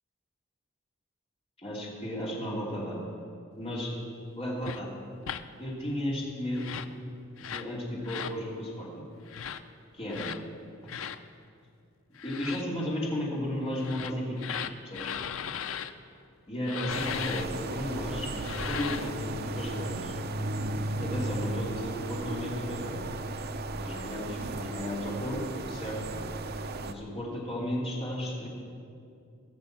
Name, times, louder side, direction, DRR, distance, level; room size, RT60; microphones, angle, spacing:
voice 1, 1.6-3.0 3.6-4.0 4.4-4.9 5.6-6.8 7.4-9.0 9.9-10.3 12.2-14.6 14.8-15.0 16.5-18.3 18.7-20.1 21.0-22.9 23.8-25.4 25.7-26.2 26.8-28.5, left 1 dB, 30° left, -4 dB, 2.8 m, -34 dB
sound 1, 4.6-4.8 5.2-5.4 6.5-6.9 7.4-7.7 8.0-8.4 9.3-9.6 10.1-10.4 10.9-11.2 12.2-12.6 13.7-15.9 16.6-17.4 18.3-19.1, left 8 dB, 85° left, 0.5 m, -37 dB
sound 2, 16.9-26.9, right 2 dB, 50° right, 0.6 m, -35 dB
16.0 x 6.8 x 7.3 m, 2.4 s
head